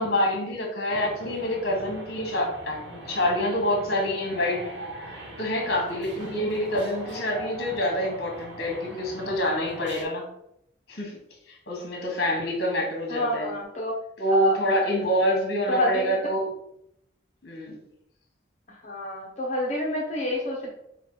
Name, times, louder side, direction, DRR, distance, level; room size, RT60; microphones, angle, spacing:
voice 1, 0.0-4.7 5.4-10.3 10.9-11.2 11.5-13.5 14.2-16.5 17.4-17.8, left 1 dB, 55° left, 0 dB, 1.3 m, -26 dB
sound 1, 0.9-10.0, right 1 dB, 70° right, 1.2 m, -41 dB
voice 2, 13.1-13.9 14.3-14.5 15.7-16.2 18.8-20.7, equal, 35° left, -2 dB, 0.7 m, -28 dB
5.3 x 2.3 x 3.8 m, 0.78 s
head